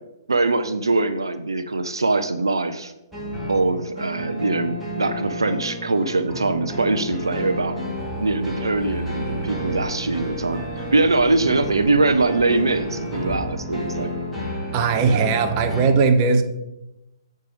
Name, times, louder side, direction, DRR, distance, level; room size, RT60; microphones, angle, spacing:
voice 1, 0.3-2.9 3.5-7.8 8.2-10.6 10.9-14.1, right 3 dB, 90° right, 10 dB, 0.5 m, -22 dB
sound 1, 3.1-15.9, equal, 5° right, 3.0 m, -31 dB
sound 2, 7.8-14.1, left 2 dB, 20° left, 2.1 m, -41 dB
voice 2, 14.7-16.4, right 4 dB, 35° right, 7 dB, 1.0 m, -18 dB
8.0 x 5.3 x 5.2 m, 0.92 s
hypercardioid pair, 125°, 2 cm